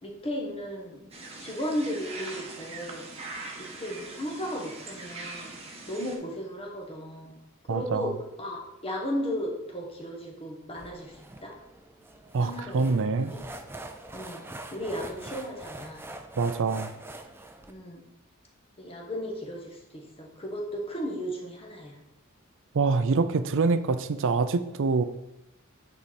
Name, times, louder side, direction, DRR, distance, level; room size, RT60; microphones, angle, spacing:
voice 1, 0.0-3.1 3.6-5.6 5.9-7.4 7.7-11.5 12.4-13.5 14.1-14.5 14.7-16.1 17.7-18.0 18.8-22.0, equal, 25° left, 1 dB, 1.4 m, -35 dB
sound 1, 1.1-6.2, right 3 dB, 30° right, 1.3 m, -41 dB
voice 2, 7.7-8.1 12.3-13.4 16.4-16.9 22.7-25.0, right 4 dB, 60° right, 12 dB, 0.5 m, -25 dB
sound 2, 10.8-17.7, right 2 dB, 10° right, 0.5 m, -44 dB
8.7 x 4.6 x 4.3 m, 0.90 s
head